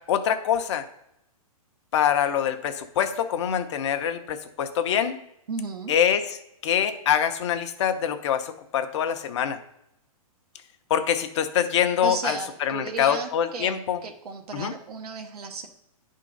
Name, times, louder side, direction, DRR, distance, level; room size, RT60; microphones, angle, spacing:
voice 1, 0.1-0.9 1.9-5.2 5.9-6.4 6.6-9.6 10.9-14.0 14.5-14.7, left 9 dB, 50° left, 7 dB, 0.8 m, -24 dB
voice 2, 5.5-5.9 12.0-13.7 14.0-15.7, right 4 dB, 80° right, 4 dB, 1.0 m, -34 dB
9.8 x 3.8 x 5.3 m, 0.80 s
hypercardioid pair, 160°, 19 cm